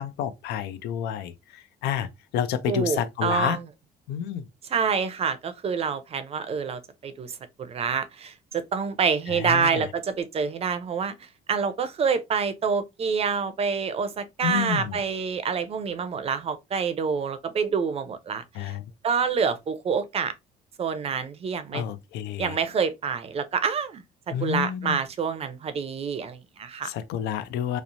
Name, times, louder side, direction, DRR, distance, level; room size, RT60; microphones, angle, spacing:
voice 1, 0.0-2.1 2.3-3.6 4.1-4.5 9.3-9.8 14.4-15.0 18.5-18.8 21.7-22.6 24.3-25.0 26.8-27.8, left 9 dB, 85° left, 0.4 m, -29 dB
voice 2, 2.7-3.6 4.7-18.7 19.0-20.3 20.8-21.8 22.4-24.0 24.4-26.9, right 6 dB, 35° right, 0.5 m, -27 dB
3.0 x 2.0 x 2.5 m
cardioid pair, 110°, 17 cm